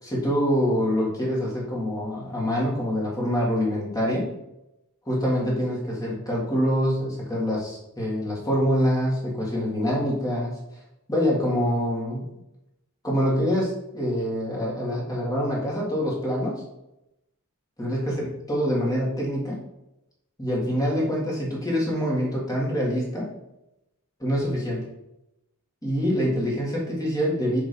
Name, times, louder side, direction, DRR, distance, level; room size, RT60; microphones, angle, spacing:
voice 1, 0.0-4.3 5.0-10.6 11.1-12.3 13.0-16.6 17.8-19.6 20.4-23.3 24.2-24.9 25.8-27.6, equal, 15° left, -4 dB, 1.7 m, -25 dB
6.7 x 3.1 x 5.1 m, 0.88 s
head